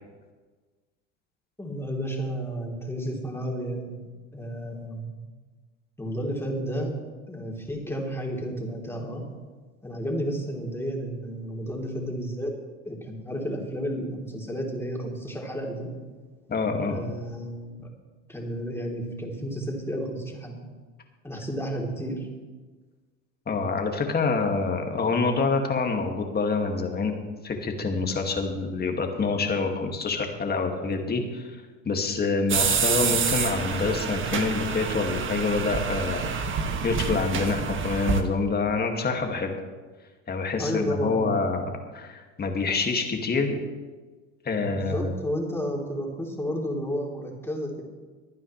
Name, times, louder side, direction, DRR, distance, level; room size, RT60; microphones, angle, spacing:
voice 1, 1.6-4.0 4.3-5.1 6.0-6.9 7.3-9.2 9.8-12.5 12.8-15.9 16.9-17.9 18.3-20.7 21.2-22.3 40.6-41.4 44.6-47.8, equal, 5° left, -1 dB, 3.6 m, -32 dB
voice 2, 16.5-17.0 23.5-27.1 27.4-31.6 31.8-36.3 36.8-39.5 40.3-43.6 44.4-45.1, left 4 dB, 25° left, 3 dB, 2.2 m, -26 dB
sound 1, 32.5-38.2, right 6 dB, 30° right, 1.4 m, -27 dB
24.5 x 9.3 x 3.3 m, 1.3 s
hypercardioid pair, 85°, 37 cm